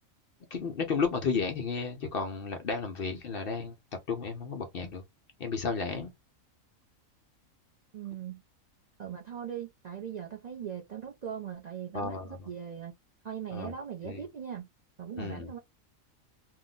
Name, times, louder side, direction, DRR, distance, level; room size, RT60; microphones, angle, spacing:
voice 1, 0.5-3.7 4.1-5.0 5.4-6.1 11.9-12.5 13.5-13.7 14.0-14.2 15.2-15.5, left 5 dB, 55° left, 0.7 m, -33 dB
voice 2, 7.9-8.4 9.0-12.9 13.2-14.7 15.0-15.6, right 8 dB, 70° right, 0.4 m, -40 dB
2.8 x 2.0 x 3.7 m
omnidirectional pair, 1.4 m